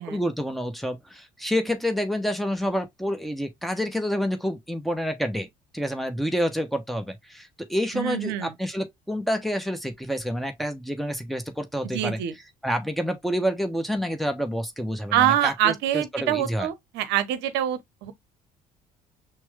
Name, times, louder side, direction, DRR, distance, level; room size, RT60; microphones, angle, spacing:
voice 1, 0.0-5.5 5.7-12.2 12.6-16.7, equal, ahead, 1.0 m, -28 dB
voice 2, 7.9-8.5 11.8-12.3 15.1-18.1, right 11 dB, 55° right, 0.9 m, -25 dB
6.0 x 2.2 x 3.5 m
figure-of-eight pair, 50°, 21 cm